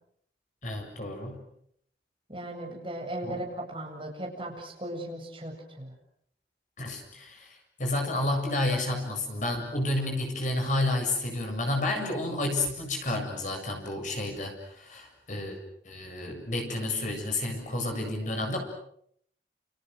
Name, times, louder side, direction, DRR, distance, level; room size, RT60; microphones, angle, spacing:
voice 1, 0.6-1.4 3.2-3.4 6.8-15.6 15.8-18.6, left 2 dB, 45° left, 3 dB, 7.7 m, -30 dB
voice 2, 2.3-5.9, right 1 dB, 30° right, 0 dB, 8.0 m, -37 dB
30.0 x 29.0 x 6.5 m, 0.68 s
head